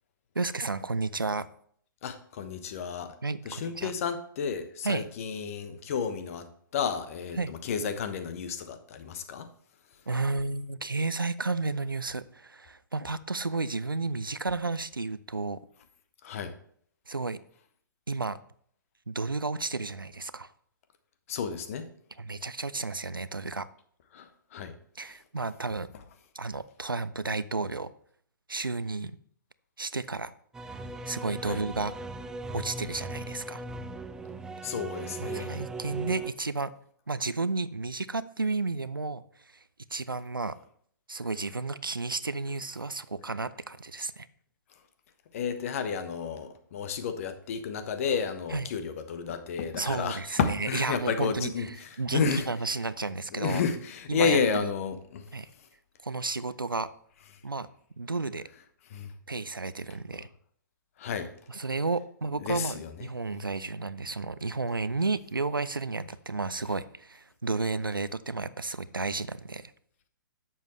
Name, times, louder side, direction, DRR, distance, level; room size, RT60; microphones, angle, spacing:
voice 1, 0.3-1.5 3.2-3.9 4.8-5.0 7.4-7.5 10.1-15.6 17.1-17.4 18.1-18.4 19.1-20.5 22.2-23.7 25.0-25.9 26.3-27.9 28.5-29.1 29.8-30.3 31.1-31.9 32.5-33.6 35.2-36.7 37.1-39.6 39.9-40.6 41.1-44.3 48.5-48.7 49.8-51.5 52.0-53.6 54.1-54.7 55.3-55.5 56.0-56.9 57.4-57.7 58.0-58.5 59.3-60.3 61.5-69.7, right 3 dB, 85° right, 16 dB, 0.5 m, -32 dB
voice 2, 2.0-3.1 3.4-9.5 16.2-16.5 21.3-21.9 24.1-24.8 25.0-25.1 31.4-31.6 34.6-35.6 44.7-44.8 45.3-52.5 53.3-55.7 58.9-59.1 61.0-61.3 62.3-63.1, left 6 dB, 40° left, 10 dB, 1.1 m, -32 dB
sound 1, 30.5-36.3, right 3 dB, 5° right, 0.4 m, -38 dB
11.0 x 7.4 x 3.2 m, 0.62 s
figure-of-eight pair, 125°, 11 cm